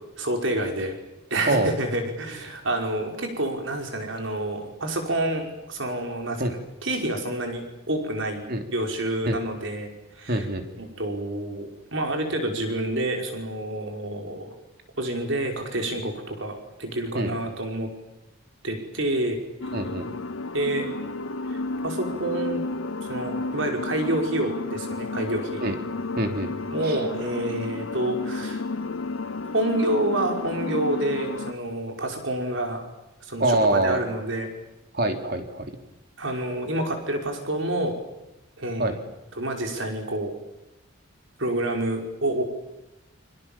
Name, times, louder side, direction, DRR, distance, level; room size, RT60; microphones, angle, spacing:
voice 1, 0.2-1.0 1.3-10.5 10.8-14.5 15.0-17.9 18.6-19.4 20.5-20.9 21.5-22.6 23.0-25.6 26.7-28.6 29.5-32.9 33.2-34.5 36.2-38.0 38.6-39.0 39.4-40.4 41.4-42.4, right 1 dB, 65° right, 3 dB, 5.3 m, -28 dB
voice 2, 10.3-10.6 17.1-17.3 19.7-20.1 25.6-25.8 26.2-26.5 26.8-27.0 33.4-34.0 34.9-35.7 38.8-38.9, right 1 dB, 45° right, 5 dB, 3.3 m, -24 dB
sound 1, 19.6-31.5, left 3 dB, 75° left, 0.9 m, -32 dB
29.5 x 25.0 x 7.3 m, 0.96 s
head